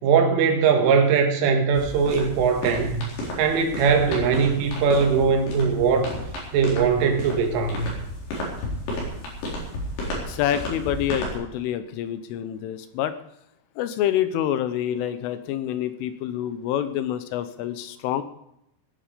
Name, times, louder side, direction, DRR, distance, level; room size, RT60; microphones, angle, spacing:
voice 1, 0.0-3.0 3.4-6.1 6.5-7.8, right 5 dB, 75° right, 4 dB, 4.2 m, -20 dB
sound 1, 1.7-11.4, left 1 dB, 60° left, 6.6 m, -33 dB
voice 2, 10.1-13.1 13.8-18.2, left 11 dB, 80° left, 11 dB, 3.2 m, -27 dB
19.0 x 11.0 x 5.1 m, 0.80 s
omnidirectional pair, 6.0 m